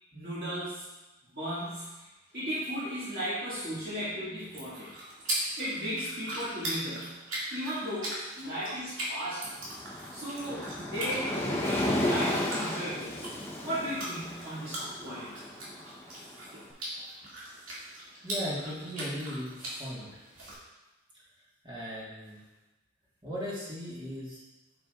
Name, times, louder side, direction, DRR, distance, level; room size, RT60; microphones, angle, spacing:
voice 1, 0.1-0.9 1.3-2.1 2.3-4.9 5.6-7.2 7.5-9.8 10.1-13.2 13.6-15.3, equal, 50° right, -11 dB, 2.1 m, -36 dB
sound 1, 4.4-20.5, right 1 dB, 85° right, 2.3 m, -40 dB
Waves surf, 9.4-16.6, left 1 dB, 15° left, 0.9 m, -33 dB
voice 2, 18.2-20.1 21.6-22.4 23.2-24.4, equal, 25° right, -7 dB, 1.6 m, -37 dB
8.0 x 5.9 x 2.5 m, 1.1 s
head